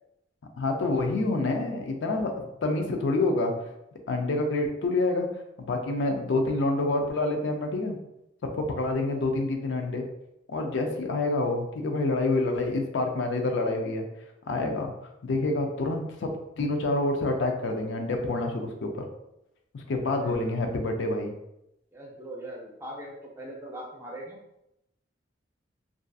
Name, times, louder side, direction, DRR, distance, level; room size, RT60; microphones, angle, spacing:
voice 1, 0.6-3.5 4.1-5.3 5.6-8.0 8.4-10.0 10.5-14.1 14.5-14.9 15.2-16.3 16.6-19.1 19.7-21.3, left 2 dB, 75° left, 4 dB, 0.4 m, -27 dB
voice 2, 20.1-20.7 21.9-24.4, right 1 dB, 15° right, -2 dB, 0.5 m, -41 dB
2.5 x 2.4 x 2.3 m, 0.85 s
head